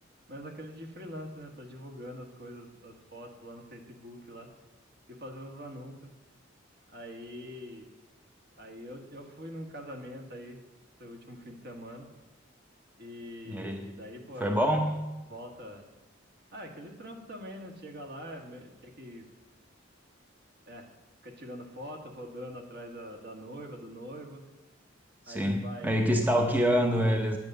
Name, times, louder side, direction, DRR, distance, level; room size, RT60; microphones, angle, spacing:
voice 1, 0.3-4.5 5.2-5.9 6.9-7.9 8.6-10.6 11.0-12.1 13.0-14.6 15.3-15.9 16.5-19.3 20.7-20.9 21.2-24.4 25.3-26.1, equal, 55° right, 2 dB, 1.9 m, -43 dB
voice 2, 13.5-13.9 14.4-15.0 25.3-27.4, equal, 10° right, 3 dB, 0.8 m, -26 dB
10.5 x 9.2 x 6.8 m, 1.1 s
head